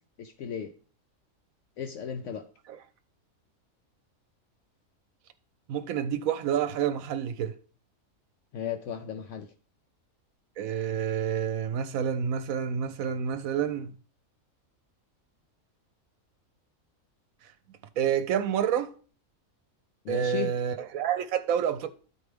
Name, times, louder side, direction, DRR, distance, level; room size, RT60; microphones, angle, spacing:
voice 1, 0.2-0.7 1.8-2.4 8.5-9.5 20.0-20.5, left 8 dB, 70° left, 0.9 m, -35 dB
voice 2, 5.7-7.5 10.6-13.9 18.0-18.9 20.1-21.9, right 8 dB, 80° right, 1.0 m, -28 dB
12.5 x 4.6 x 3.4 m
omnidirectional pair, 1.5 m